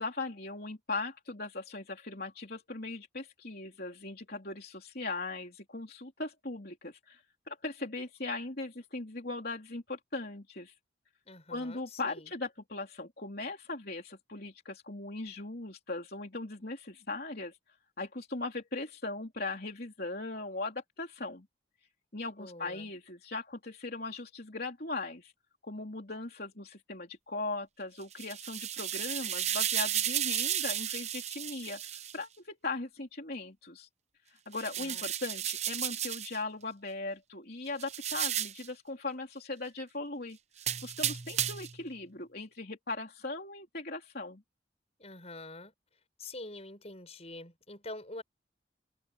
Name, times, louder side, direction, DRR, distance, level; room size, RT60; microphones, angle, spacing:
voice 1, 0.0-10.7 11.5-21.5 22.1-25.3 25.6-33.9 34.3-40.4 40.8-44.4, left 3 dB, 55° left, 3.5 m, -39 dB
voice 2, 11.3-12.3 22.4-22.9 34.8-35.1 45.0-45.7 46.2-48.2, left 2 dB, 35° left, 7.1 m, -46 dB
sound 1, 28.0-32.2 34.5-36.4 37.8-38.7 40.6-41.8, right 10 dB, 35° right, 0.8 m, -33 dB
head